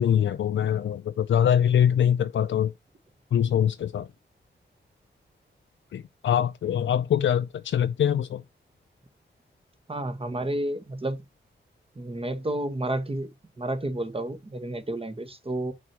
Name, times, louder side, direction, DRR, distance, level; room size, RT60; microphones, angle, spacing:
voice 1, 0.0-2.7 3.3-4.1 5.9-8.4, left 9 dB, 80° left, 0.4 m, -23 dB
voice 2, 9.9-11.2 11.9-13.3 13.6-15.7, right 1 dB, 30° right, 1.4 m, -30 dB
6.2 x 6.0 x 2.9 m
cardioid pair, 65°, 20 cm